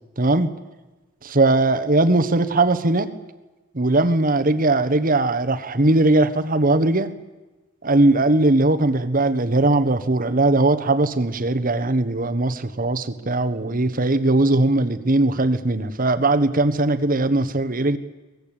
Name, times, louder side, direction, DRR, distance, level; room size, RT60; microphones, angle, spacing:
voice 1, 0.2-0.5 1.2-3.1 3.7-7.1 7.8-18.0, right 2 dB, 40° right, 9 dB, 1.4 m, -19 dB
24.0 x 19.5 x 9.0 m, 1.1 s
head